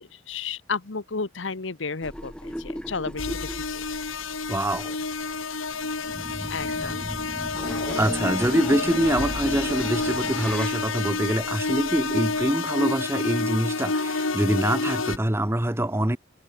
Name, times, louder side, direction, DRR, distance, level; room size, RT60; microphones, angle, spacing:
voice 1, 0.0-3.8 6.5-7.1, left 4 dB, 70° left, 1.1 m, -33 dB
sound 1, 2.0-12.5, equal, 5° left, 7.1 m, -37 dB
sound 2, 3.2-15.2, left 3 dB, 90° left, 2.1 m, -29 dB
voice 2, 4.5-4.9 6.8-6.9 8.0-16.2, right 1 dB, 15° right, 1.1 m, -25 dB
head